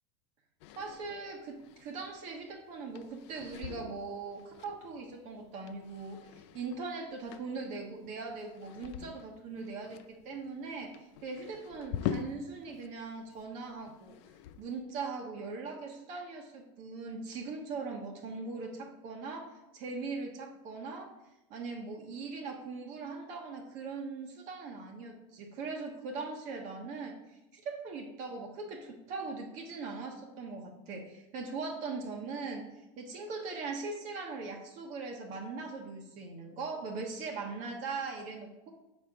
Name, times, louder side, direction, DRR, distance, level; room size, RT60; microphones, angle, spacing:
sound 1, 0.6-12.9 13.2-14.8, left 9 dB, 70° left, 0.5 m, -44 dB
voice 1, 0.7-14.2 14.6-21.1 21.5-32.6 33.0-38.7, right 4 dB, 55° right, 1 dB, 1.2 m, -40 dB
5.8 x 4.3 x 4.9 m, 0.94 s
supercardioid pair, 125°, 15 cm